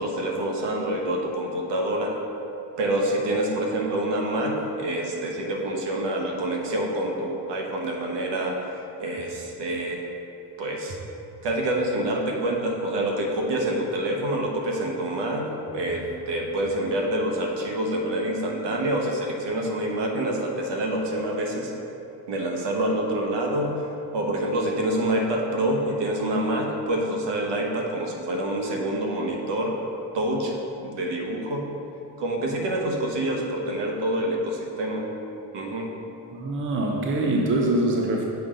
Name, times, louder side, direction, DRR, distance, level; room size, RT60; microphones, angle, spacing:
voice 1, 0.0-2.2 2.8-10.0 10.6-11.0 11.4-15.5 15.7-21.7 22.3-23.7 24.1-29.7 30.1-31.7 32.2-35.1 35.5-35.9, right 1 dB, 60° right, 1 dB, 1.2 m, -27 dB
voice 2, 36.3-38.2, right 1 dB, 25° right, 0 dB, 0.7 m, -24 dB
6.9 x 5.2 x 3.8 m, 2.9 s
cardioid pair, 100°, 48 cm